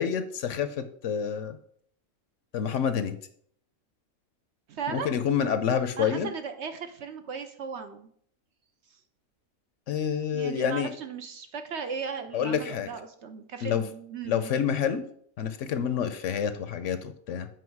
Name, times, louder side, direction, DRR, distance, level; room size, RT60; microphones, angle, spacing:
voice 1, 0.0-1.6 2.5-3.2 4.9-6.3 9.9-10.9 12.3-12.9 13.6-13.8 14.3-15.0 15.4-17.5, left 7 dB, 65° left, 10 dB, 0.9 m, -28 dB
voice 2, 4.7-5.1 6.0-8.1 10.3-14.5, right 6 dB, 60° right, 7 dB, 0.9 m, -36 dB
7.8 x 5.2 x 4.6 m, 0.63 s
omnidirectional pair, 1.5 m